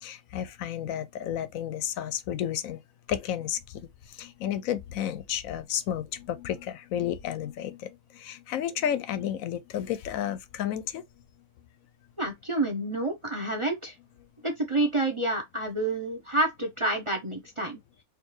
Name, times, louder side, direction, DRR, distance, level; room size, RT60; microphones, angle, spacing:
voice 1, 0.0-2.8 3.1-11.0, left 10 dB, 70° left, 1.0 m, -32 dB
voice 2, 12.2-13.9 14.4-17.8, right 2 dB, 30° right, 0.7 m, -28 dB
4.4 x 2.6 x 3.1 m
omnidirectional pair, 1.5 m